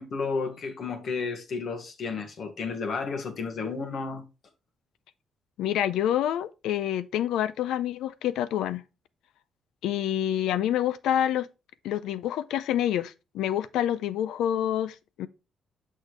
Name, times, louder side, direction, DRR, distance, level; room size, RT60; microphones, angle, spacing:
voice 1, 0.0-4.3, left 4 dB, 65° left, 1.6 m, -32 dB
voice 2, 5.6-8.8 9.8-11.5 11.8-15.3, left 11 dB, 85° left, 0.5 m, -27 dB
6.4 x 6.4 x 3.2 m
supercardioid pair, 65°, 0 cm